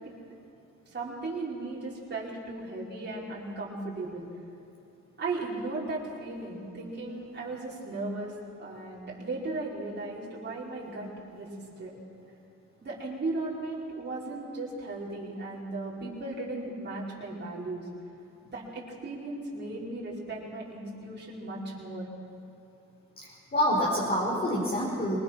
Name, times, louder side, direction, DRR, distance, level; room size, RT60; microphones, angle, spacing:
voice 1, 0.9-4.3 5.2-11.5 11.8-12.0 12.8-17.9 18.5-22.0, right 2 dB, 35° right, -5 dB, 5.0 m, -36 dB
voice 2, 23.2-25.2, equal, 30° left, -5 dB, 5.0 m, -27 dB
23.5 x 20.0 x 6.2 m, 2.7 s
cardioid pair, 90°, 30 cm